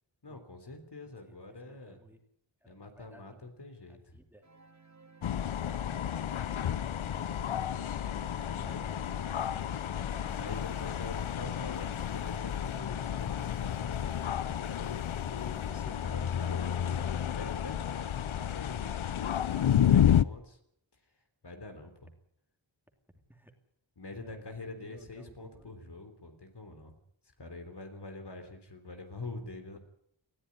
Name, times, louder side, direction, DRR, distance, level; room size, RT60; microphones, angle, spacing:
voice 1, 0.2-2.0 2.7-4.2 8.4-9.6 10.3-20.6 21.4-22.1 24.0-26.9 27.4-29.8, left 2 dB, 60° left, 6 dB, 3.7 m, -46 dB
voice 2, 1.2-2.2 2.6-3.5 3.9-4.4 5.8-7.2 8.9-9.5 19.2-19.7 23.3-23.5 24.1-25.9, right 1 dB, 5° right, 5 dB, 2.7 m, -58 dB
sound 1, 4.4-16.3, right 4 dB, 35° right, 2.1 m, -55 dB
sound 2, 5.2-20.2, left 9 dB, 85° left, 0.7 m, -31 dB
sound 3, 10.1-15.9, right 4 dB, 55° right, 2.5 m, -61 dB
20.0 x 14.5 x 9.9 m, 0.72 s
wide cardioid pair, 80°, 47 cm